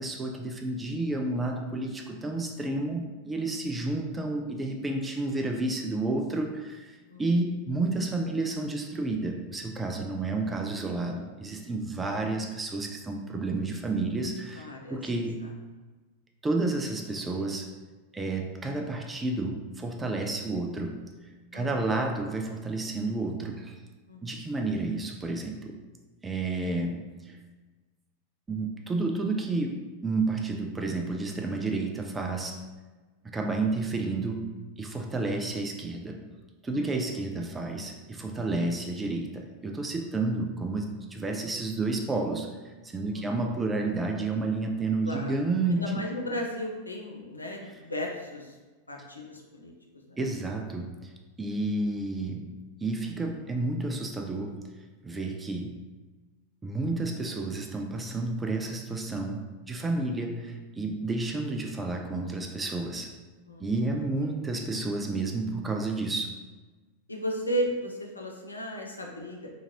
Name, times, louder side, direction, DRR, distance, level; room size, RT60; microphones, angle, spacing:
voice 1, 0.0-15.4 16.4-17.7 18.1-21.0 21.2-23.8 24.2-25.7 26.2-27.4 28.5-32.6 33.3-34.5 34.8-36.2 36.6-46.0 50.2-51.1 51.4-52.4 52.8-54.6 55.0-55.7 56.6-59.4 59.7-63.1 63.6-66.4, right 2 dB, 15° right, 2 dB, 0.4 m, -31 dB
voice 2, 14.6-15.2 21.5-22.0 24.1-24.4 36.7-37.2 43.1-43.3 45.0-45.4 45.7-48.6 48.9-49.7 50.1-50.2 63.5-63.8 67.1-69.5, equal, 80° left, 0 dB, 0.4 m, -35 dB
2.8 x 2.5 x 2.9 m, 1.3 s
figure-of-eight pair, 90°, 0 cm